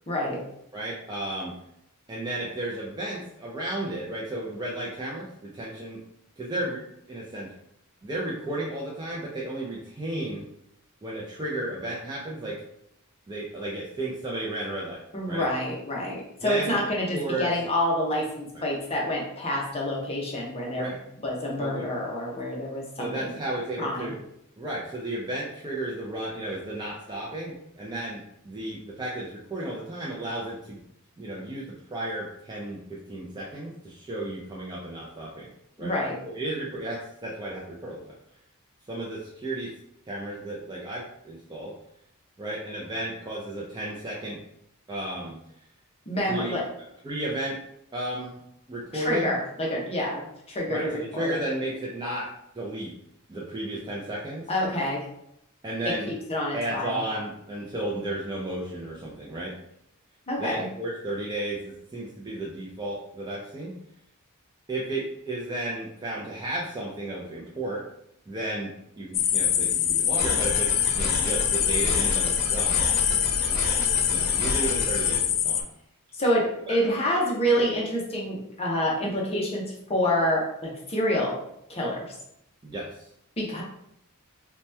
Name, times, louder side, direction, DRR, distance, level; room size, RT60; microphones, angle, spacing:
voice 1, 0.1-0.4 15.1-21.0 21.2-23.3 23.8-24.1 35.8-36.2 46.1-46.6 48.9-51.4 54.5-55.0 55.9-57.0 60.3-60.7 76.2-79.6 79.9-81.3 81.7-82.1 83.4-83.6, equal, 25° left, -3 dB, 0.6 m, -27 dB
voice 2, 0.7-1.5 2.1-6.0 6.4-6.8 7.1-7.5 8.0-10.4 11.0-12.6 13.3-15.0 15.3-15.4 16.4-17.5 20.6-21.0 21.6-21.8 23.0-24.2 24.6-30.8 31.2-31.6 31.9-35.5 35.8-35.9 36.2-38.0 38.9-39.7 40.1-41.7 42.4-44.4 44.9-45.4 46.3-46.6 47.0-47.6 47.9-48.4 48.7-49.3 50.7-52.3 52.5-52.9 53.3-54.5 55.6-56.1 56.5-59.5 60.4-63.7 64.7-67.8 68.3-72.7 73.5-73.6 74.1-75.7 82.6-82.9, right 1 dB, 20° right, -5 dB, 0.4 m, -33 dB
sound 1, 69.1-75.6, left 9 dB, 90° left, 0.3 m, -24 dB
sound 2, 70.2-75.2, left 1 dB, 45° left, 1.0 m, -32 dB
2.8 x 2.2 x 3.2 m, 0.77 s
head